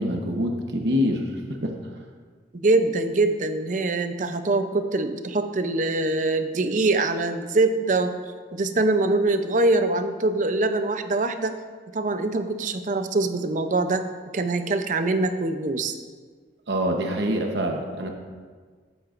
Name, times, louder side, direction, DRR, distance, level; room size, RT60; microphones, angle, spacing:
voice 1, 0.0-1.7 16.7-18.1, equal, 70° right, 2 dB, 1.0 m, -25 dB
voice 2, 2.5-8.1 8.5-11.6 11.9-14.0 14.3-15.9, right 2 dB, 45° right, 8 dB, 0.6 m, -23 dB
15.0 x 7.8 x 2.5 m, 1.5 s
head